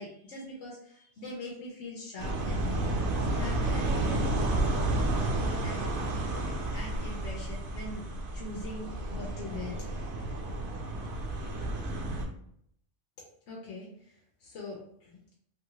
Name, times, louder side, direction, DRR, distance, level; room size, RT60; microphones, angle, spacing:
voice 1, 0.0-8.0 8.3-9.8 13.5-15.2, left 2 dB, 90° left, -4 dB, 1.1 m, -42 dB
sound 1, 2.2-12.3, right 2 dB, 55° right, 0.7 m, -31 dB
3.2 x 2.6 x 2.9 m, 0.68 s
omnidirectional pair, 1.2 m